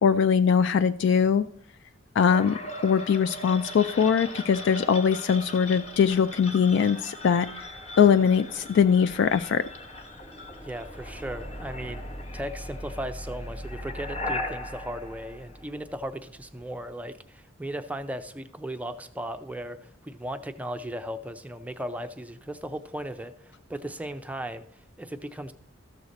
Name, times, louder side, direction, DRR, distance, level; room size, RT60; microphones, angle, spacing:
voice 1, 0.0-1.5 2.2-7.5 8.0-9.6, left 7 dB, 65° left, 12 dB, 0.3 m, -21 dB
sound 1, 2.3-16.2, left 1 dB, 35° left, 1.2 m, -38 dB
voice 2, 10.6-12.0 12.3-25.5, right 1 dB, 10° right, 8 dB, 0.4 m, -37 dB
13.5 x 6.4 x 4.1 m, 0.65 s
head